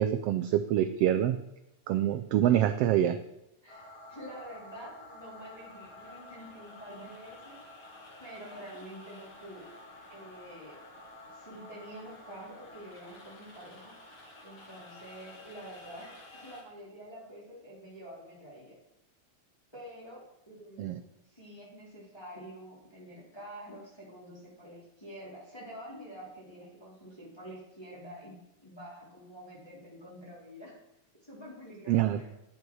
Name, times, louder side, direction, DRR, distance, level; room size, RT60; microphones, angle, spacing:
voice 1, 0.0-1.4 1.9-3.2 20.8-21.0 31.9-32.2, right 11 dB, 85° right, 10 dB, 1.3 m, -26 dB
voice 2, 2.5-2.8 3.6-7.9 8.2-9.7 10.1-10.8 11.3-14.0 14.4-18.8 19.7-21.0 21.3-28.3 28.6-30.8 31.2-32.3, equal, 10° left, -6 dB, 3.3 m, -47 dB
sound 1, 3.7-16.6, left 2 dB, 45° left, 2.9 m, -51 dB
10.5 x 9.7 x 4.7 m, 0.85 s
omnidirectional pair, 3.3 m